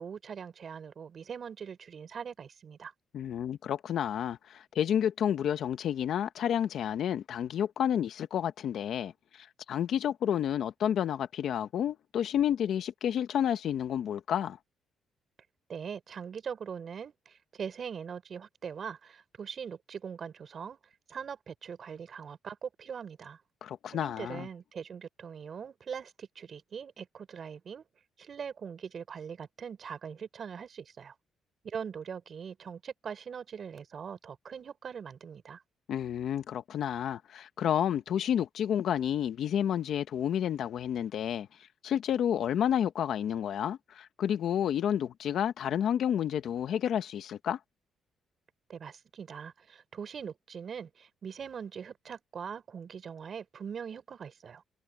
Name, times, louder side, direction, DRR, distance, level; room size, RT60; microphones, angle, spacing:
voice 1, 0.0-2.9 15.7-20.8 21.1-23.4 23.9-27.8 28.2-31.1 31.6-35.6 48.7-54.6, right 7 dB, 50° right, 4.6 m, -41 dB
voice 2, 3.1-14.6 23.6-24.5 35.9-41.5 41.8-47.6, left 9 dB, 70° left, 1.5 m, -30 dB
cardioid pair, 90°, 0 cm